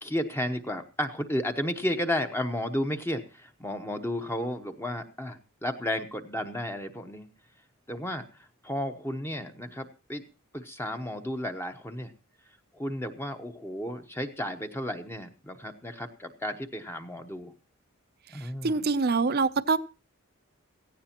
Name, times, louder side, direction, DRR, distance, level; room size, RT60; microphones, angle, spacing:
voice 1, 0.0-7.3 7.9-8.3 8.6-10.2 10.5-12.1 12.7-17.5 18.3-18.9, left 1 dB, 10° left, 6 dB, 0.9 m, -33 dB
voice 2, 18.3-19.8, right 4 dB, 45° right, 14 dB, 0.6 m, -25 dB
17.0 x 15.0 x 2.9 m, 0.31 s
head